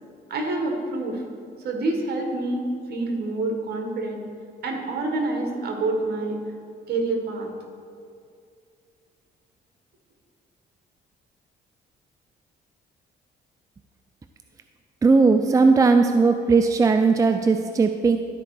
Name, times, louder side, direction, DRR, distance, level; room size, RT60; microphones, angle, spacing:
voice 1, 0.3-1.2 1.6-4.2 4.6-6.4 6.9-7.5, right 2 dB, 60° right, 2 dB, 1.6 m, -27 dB
voice 2, 15.0-18.2, right 4 dB, 20° right, 7 dB, 0.4 m, -18 dB
12.0 x 4.3 x 4.9 m, 2.2 s
cardioid pair, 90°, 18 cm